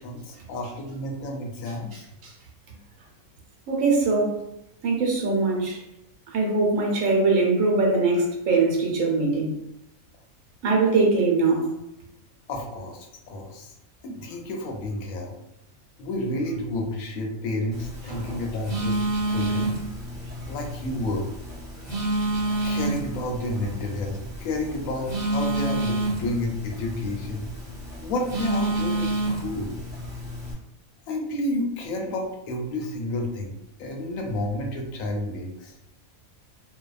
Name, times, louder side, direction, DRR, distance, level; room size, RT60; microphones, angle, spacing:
voice 1, 0.0-2.0 12.5-13.7 14.0-15.3 16.0-19.0 19.3-19.7 20.5-21.3 22.6-27.4 28.0-29.7 31.1-35.7, left 1 dB, 80° left, 1 dB, 1.0 m, -30 dB
voice 2, 3.7-4.4 4.8-5.8 6.3-9.5 10.6-11.7 18.1-18.4, right 3 dB, 75° right, -1 dB, 1.0 m, -22 dB
Telephone, 17.7-30.5, right 1 dB, 15° right, 0.6 m, -29 dB
2.6 x 2.2 x 2.3 m, 0.80 s
omnidirectional pair, 1.5 m